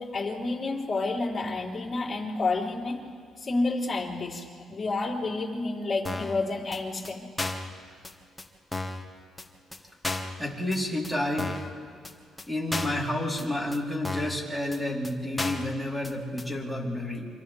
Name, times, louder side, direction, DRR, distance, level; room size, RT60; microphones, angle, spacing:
voice 1, 0.0-3.0 3.4-7.2, left 3 dB, 30° left, -4 dB, 4.1 m, -30 dB
sound 1, 6.0-6.4 6.7-6.8 7.0-7.1 7.4-7.7 8.0-8.1 8.4-8.5 8.7-9.0 9.4-9.5 9.7-9.8 10.0-10.4 10.7-10.8 11.0-11.1 11.4-11.7 12.0-12.1 12.4-12.5 12.7-13.0 13.4-13.5 13.7-13.8 14.0-14.4 14.7-14.8 15.0-15.1 15.4-15.7 16.0-16.1 16.4-16.5, left 2 dB, 10° left, 1.8 m, -33 dB
voice 2, 10.4-11.6 12.5-17.3, left 1 dB, 5° right, -2 dB, 4.3 m, -30 dB
28.0 x 25.5 x 3.7 m, 2.2 s
cardioid pair, 90°, 0 cm